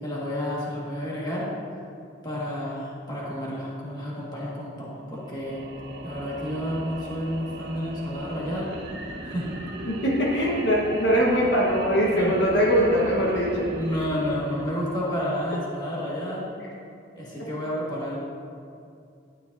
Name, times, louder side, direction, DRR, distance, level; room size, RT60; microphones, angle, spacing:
voice 1, 0.0-1.5 2.2-5.6 6.0-8.7 9.2-9.5 12.2-12.3 13.7-16.4 17.1-18.2, equal, 20° left, -6 dB, 1.8 m, -30 dB
sound 1, 5.1-15.5, right 1 dB, 50° right, 1.3 m, -37 dB
voice 2, 9.8-13.7 16.6-16.7 17.4-17.5, equal, 55° left, -3 dB, 1.3 m, -22 dB
12.0 x 10.0 x 2.7 m, 2.4 s
head